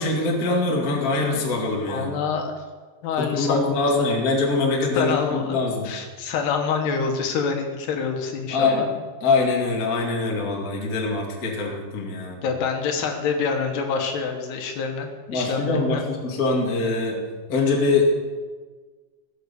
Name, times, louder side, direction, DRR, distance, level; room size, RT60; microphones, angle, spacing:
voice 1, 0.0-2.1 3.2-5.9 8.5-8.9 9.2-12.4 15.3-17.2 17.5-18.0, left 3 dB, 30° left, -1 dB, 1.7 m, -23 dB
voice 2, 1.9-2.5 3.0-3.9 5.0-5.6 5.8-8.8 12.4-16.0, left 5 dB, 75° left, 4 dB, 3.3 m, -26 dB
16.5 x 8.0 x 7.0 m, 1.4 s
omnidirectional pair, 4.9 m